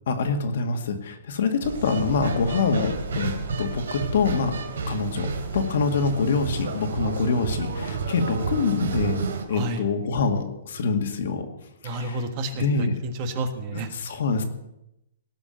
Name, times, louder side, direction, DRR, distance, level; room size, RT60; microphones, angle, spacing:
voice 1, 0.1-4.5 4.9-5.3 5.5-9.2 9.5-11.5 11.8-12.2 12.5-12.9 13.7-14.4, left 4 dB, 60° left, 5 dB, 2.1 m, -25 dB
sound 1, 1.6-9.4, right 4 dB, 90° right, 2.9 m, -30 dB
voice 2, 9.5-9.8 11.8-14.0, right 2 dB, 30° right, 8 dB, 1.5 m, -30 dB
18.0 x 6.2 x 9.1 m, 0.86 s
hypercardioid pair, 170°, 0 cm